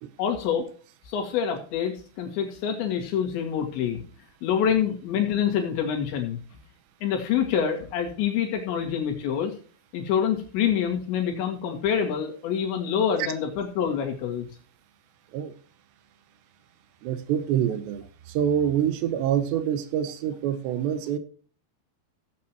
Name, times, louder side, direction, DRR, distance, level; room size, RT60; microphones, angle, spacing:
voice 1, 0.2-0.7 1.1-4.0 4.4-6.4 7.0-9.5 9.9-14.5, left 8 dB, 90° left, 4.5 m, -26 dB
voice 2, 17.0-21.2, right 9 dB, 85° right, 3.0 m, -26 dB
16.0 x 8.5 x 3.0 m
omnidirectional pair, 5.0 m